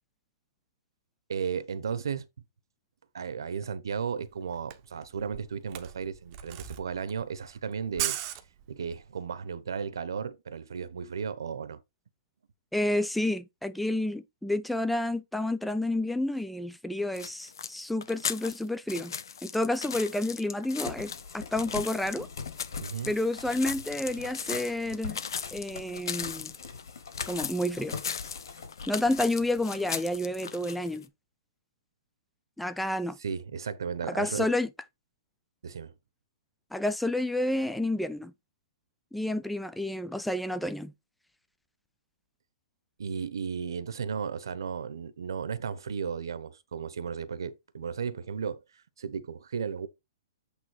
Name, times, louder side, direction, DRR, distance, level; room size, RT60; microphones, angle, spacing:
voice 1, 1.3-2.3 3.1-8.2 8.7-11.8 22.8-23.1 33.2-34.5 35.6-35.9 43.0-48.6 49.0-49.9, right 6 dB, 85° right, 1.0 m, -34 dB
Camera, 4.2-4.3 4.5-9.1, right 12 dB, 25° right, 0.8 m, -37 dB
voice 2, 12.7-19.1 19.4-22.3 23.1-25.2 25.5-26.5 27.3-28.0 28.9-31.1 32.6-33.2 34.1-34.7 36.7-38.3 39.1-40.9, left 1 dB, ahead, 0.4 m, -30 dB
sound 1, 17.1-31.0, left 6 dB, 90° left, 0.9 m, -38 dB
sound 2, 20.9-30.4, left 5 dB, 70° left, 3.4 m, -43 dB
8.3 x 3.4 x 4.8 m
hypercardioid pair, 170°, 2 cm